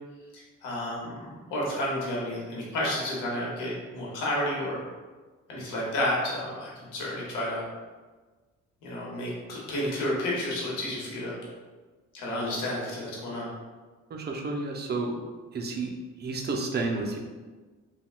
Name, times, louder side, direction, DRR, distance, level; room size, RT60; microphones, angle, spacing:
voice 1, 0.3-1.1 1.5-4.8 5.5-7.7 8.8-11.4 12.1-13.5, left 1 dB, 90° left, -4 dB, 0.9 m, -31 dB
voice 2, 14.1-15.2 15.5-17.2, right 3 dB, 35° right, 2 dB, 0.5 m, -31 dB
3.4 x 2.2 x 2.3 m, 1.3 s
cardioid pair, 90°, 30 cm